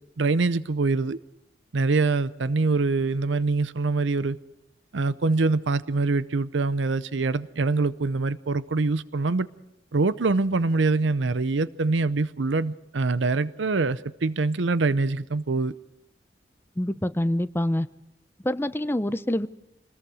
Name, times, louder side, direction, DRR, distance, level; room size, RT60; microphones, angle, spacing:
voice 1, 0.2-1.2 1.7-4.4 4.9-9.5 9.9-15.7, right 3 dB, 90° right, 0.7 m, -24 dB
voice 2, 16.8-17.9 18.4-19.5, left 1 dB, 15° left, 0.7 m, -26 dB
26.0 x 20.5 x 4.9 m
head